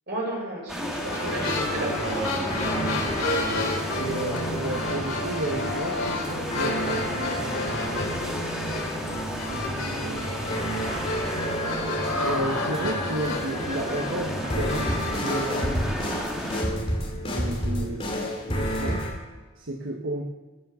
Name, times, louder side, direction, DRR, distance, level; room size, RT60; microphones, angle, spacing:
voice 1, 0.1-2.4, right 1 dB, 50° right, -3 dB, 6.1 m, -33 dB
sound 1, 0.7-16.6, equal, 5° right, 1.8 m, -33 dB
sound 2, 0.9-15.4, left 2 dB, 70° left, 2.9 m, -32 dB
sound 3, 1.2-19.1, equal, 25° left, 2.9 m, -31 dB
voice 2, 4.0-7.1 7.3-7.8 9.5-10.3 12.2-16.0 17.3-19.0 19.6-20.2, right 1 dB, 70° right, 1 dB, 1.4 m, -33 dB
16.5 x 9.6 x 7.0 m, 1.3 s
head